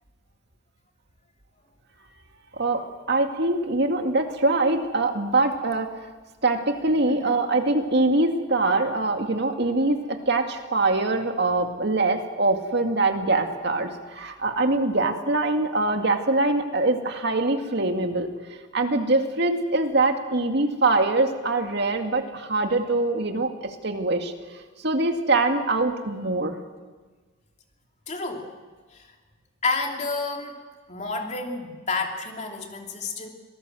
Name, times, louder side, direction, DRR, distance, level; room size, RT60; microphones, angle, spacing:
voice 1, 2.5-6.1 6.4-24.3 24.8-26.6, right 2 dB, 60° right, 5 dB, 2.2 m, -23 dB
voice 2, 28.1-28.5 28.9-29.1 29.6-30.6 30.9-33.3, left 3 dB, 40° left, 2 dB, 2.9 m, -30 dB
26.0 x 18.5 x 7.8 m, 1.4 s
head